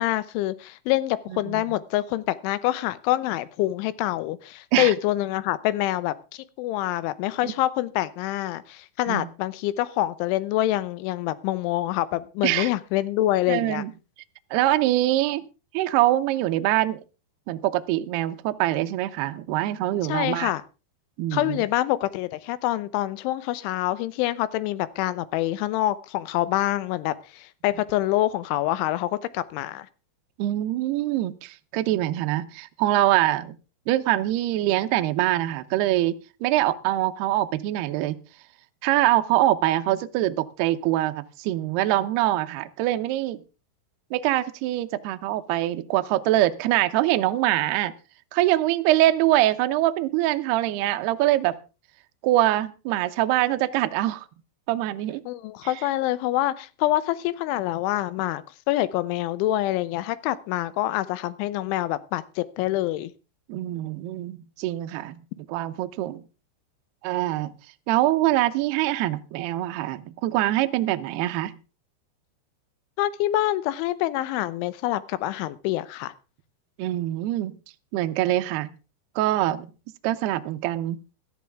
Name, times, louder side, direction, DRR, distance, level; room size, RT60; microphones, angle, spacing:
voice 1, 0.0-13.8 20.1-20.6 21.3-29.9 55.3-63.1 73.0-76.1, left 15 dB, 85° left, 16 dB, 3.3 m, -26 dB
voice 2, 1.3-1.6 4.7-4.9 7.4-7.5 9.1-9.3 12.4-12.7 13.5-13.9 14.5-15.4 15.7-17.0 17.5-20.5 21.2-21.6 30.4-33.6 33.9-38.2 38.8-43.4 44.1-47.9 48.3-51.6 52.2-54.3 54.7-55.2 55.6-55.7 63.5-66.2 67.0-67.5 67.9-71.5 76.8-77.6 77.9-78.7 79.2-79.7 80.0-81.0, right 15 dB, 75° right, 9 dB, 2.5 m, -24 dB
16.5 x 13.0 x 3.5 m, 0.31 s
omnidirectional pair, 5.4 m